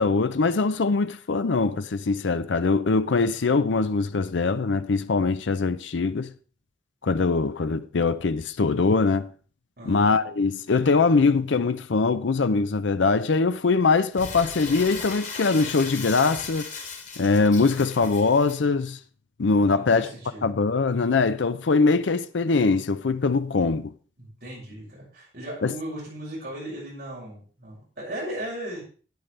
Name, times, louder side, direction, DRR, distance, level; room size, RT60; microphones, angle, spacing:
voice 1, 0.0-6.3 7.0-9.3 9.9-16.7 17.2-19.0 19.4-20.1 20.4-23.9 25.6-25.7, left 4 dB, 90° left, 0.6 m, -22 dB
Crumpling crinkling, 14.1-18.6, left 4 dB, 40° left, 2.2 m, -37 dB
voice 2, 19.7-20.4 24.2-28.8, right 1 dB, 60° right, 6.1 m, -37 dB
12.5 x 9.2 x 3.3 m
head